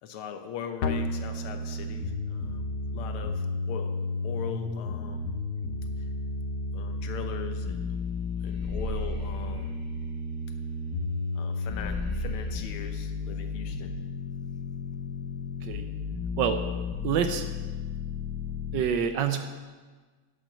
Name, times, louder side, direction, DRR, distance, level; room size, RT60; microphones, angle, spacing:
voice 1, 0.0-3.9 4.2-5.4 6.7-7.9 8.4-9.8 11.4-13.9, left 7 dB, 85° left, 7 dB, 1.8 m, -40 dB
sound 1, 0.8-18.8, left 3 dB, 65° left, 1.1 m, -33 dB
sound 2, 7.6-7.8 8.1-10.9 11.2-11.3 11.6-12.9, equal, 30° right, 1.8 m, -38 dB
voice 2, 17.0-17.4 18.7-19.4, right 8 dB, 70° right, 8 dB, 1.2 m, -26 dB
11.0 x 6.0 x 6.5 m, 1.4 s
omnidirectional pair, 2.3 m